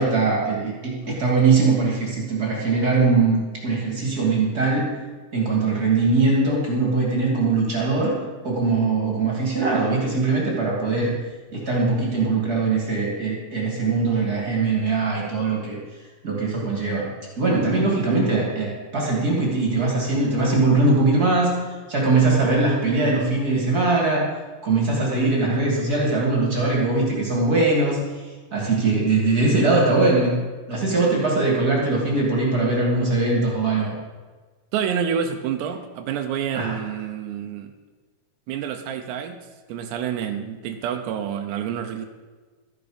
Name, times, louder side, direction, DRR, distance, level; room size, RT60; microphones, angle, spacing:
voice 1, 0.0-4.9 5.3-8.2 8.4-11.1 11.5-15.8 16.2-21.6 21.9-24.3 24.6-28.0 28.5-30.4 30.7-33.9 36.5-36.8, right 3 dB, 30° right, -3 dB, 2.1 m, -21 dB
voice 2, 34.7-37.7 38.5-39.4 39.7-42.1, right 8 dB, 85° right, 5 dB, 2.9 m, -28 dB
13.5 x 11.0 x 5.1 m, 1.4 s
omnidirectional pair, 4.9 m